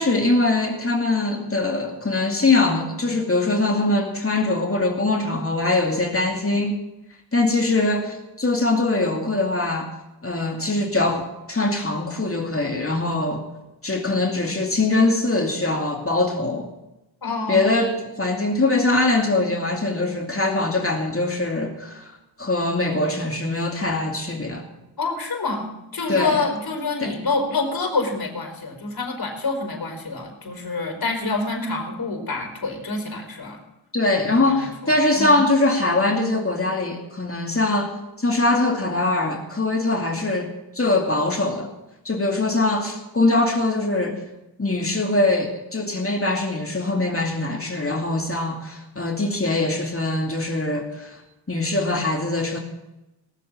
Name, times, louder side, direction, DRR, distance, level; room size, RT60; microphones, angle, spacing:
voice 1, 0.0-6.7 7.3-9.9 10.2-13.4 13.8-16.7 17.5-22.1 22.4-24.6 26.1-26.4 27.0-27.1 33.9-37.9 38.2-41.7 42.0-44.2 44.6-51.2 51.5-52.6, left 2 dB, 30° left, 2 dB, 2.5 m, -22 dB
voice 2, 17.2-17.8 25.0-33.6 34.2-35.4, left 3 dB, 50° left, 2 dB, 4.6 m, -27 dB
18.5 x 7.8 x 7.3 m, 0.96 s
cardioid pair, 50°, 46 cm